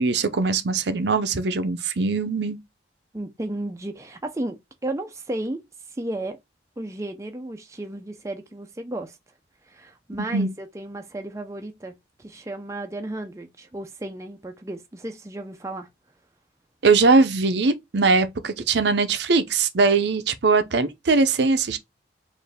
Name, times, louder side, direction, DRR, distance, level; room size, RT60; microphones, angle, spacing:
voice 1, 0.0-2.6 10.3-10.5 16.8-21.8, right 4 dB, 65° right, 0.6 m, -21 dB
voice 2, 3.1-5.6 5.9-6.4 6.8-9.2 9.6-11.9 12.2-15.9, right 1 dB, 15° right, 0.4 m, -33 dB
4.4 x 2.6 x 3.3 m
head